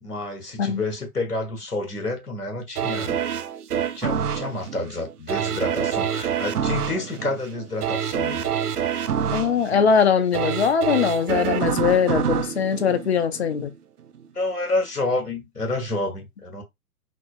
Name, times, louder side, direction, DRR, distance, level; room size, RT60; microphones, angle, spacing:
voice 1, 0.0-3.2 3.9-8.4 14.3-16.6, left 2 dB, 90° left, 1.4 m, -29 dB
sound 1, 2.8-13.7 14.1-14.2, right 8 dB, 80° right, 0.5 m, -27 dB
voice 2, 9.3-13.7, left 7 dB, 45° left, 0.6 m, -21 dB
3.7 x 2.3 x 2.4 m
figure-of-eight pair, 125°, 45 cm